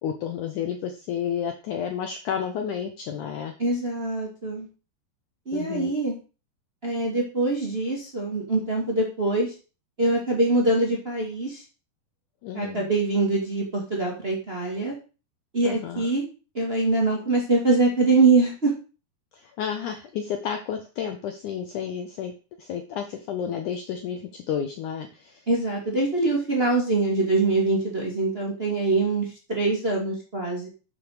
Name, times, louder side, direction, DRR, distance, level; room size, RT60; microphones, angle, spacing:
voice 1, 0.0-3.5 5.5-5.9 12.4-12.9 15.6-16.1 19.3-22.3 22.6-25.4, left 8 dB, 90° left, 6 dB, 1.7 m, -31 dB
voice 2, 3.6-4.7 5.4-6.2 6.8-9.5 10.0-11.6 12.5-14.9 15.5-16.3 16.5-18.7 25.5-30.7, right 3 dB, 20° right, -1 dB, 1.6 m, -23 dB
9.0 x 5.4 x 6.7 m, 0.34 s
omnidirectional pair, 4.9 m